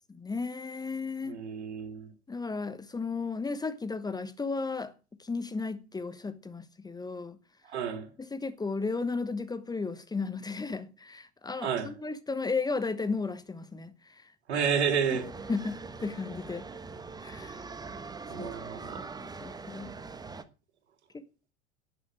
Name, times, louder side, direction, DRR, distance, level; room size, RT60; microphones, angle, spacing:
voice 1, 0.1-1.4 2.3-4.9 5.2-7.4 8.3-13.9 15.1-15.2 15.5-16.6 17.2-17.6 18.4-18.5 19.2-19.9 21.1-21.2, left 4 dB, 10° left, 1.1 m, -34 dB
voice 2, 1.2-2.1 7.7-8.1 11.6-11.9 14.5-15.3 18.3-19.1, right 7 dB, 70° right, 2.5 m, -30 dB
sound 1, 15.1-20.4, right 4 dB, 10° right, 1.2 m, -42 dB
11.0 x 9.8 x 7.5 m
figure-of-eight pair, 80°, 35 cm